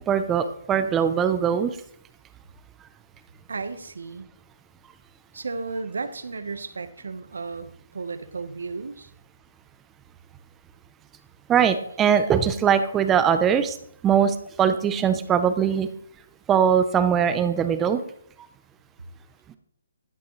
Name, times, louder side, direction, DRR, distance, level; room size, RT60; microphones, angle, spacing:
voice 1, 0.1-1.8 11.5-13.8 14.0-15.9 16.5-18.0, right 8 dB, 15° right, 10 dB, 0.7 m, -21 dB
voice 2, 3.5-4.3 5.3-9.1, right 4 dB, 80° right, 10 dB, 1.2 m, -34 dB
14.5 x 10.0 x 3.3 m, 0.65 s
hypercardioid pair, 155°, 0 cm